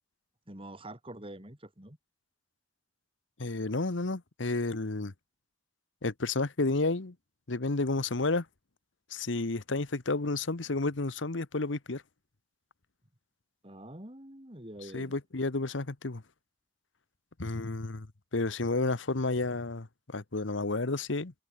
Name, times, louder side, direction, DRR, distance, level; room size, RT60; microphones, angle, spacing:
voice 1, 0.5-2.0 13.6-15.2, right 1 dB, 30° right, 3.8 m, -46 dB
voice 2, 3.4-5.1 6.0-7.1 7.5-8.4 9.1-12.0 14.9-16.2 17.4-18.1 18.3-21.3, left 3 dB, 85° left, 1.2 m, -31 dB
head